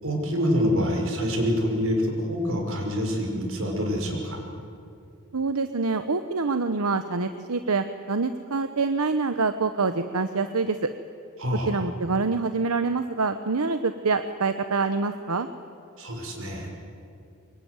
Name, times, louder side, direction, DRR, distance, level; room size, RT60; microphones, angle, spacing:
voice 1, 0.0-4.4 11.4-11.8 16.0-16.7, equal, 65° right, 2 dB, 5.8 m, -26 dB
voice 2, 5.3-10.9 11.7-15.5, right 4 dB, 90° right, 9 dB, 1.0 m, -26 dB
25.0 x 22.5 x 9.7 m, 2.5 s
head